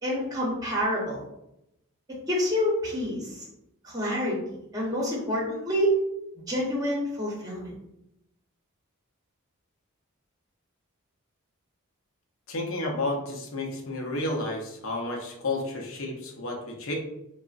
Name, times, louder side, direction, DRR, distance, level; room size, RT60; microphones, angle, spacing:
voice 1, 0.0-1.2 2.1-3.4 3.8-4.4 4.7-5.9 6.5-7.7, left 1 dB, 15° right, -4 dB, 0.8 m, -28 dB
voice 2, 12.5-16.9, left 2 dB, 65° left, 0 dB, 0.6 m, -31 dB
3.6 x 2.0 x 2.4 m, 0.83 s
head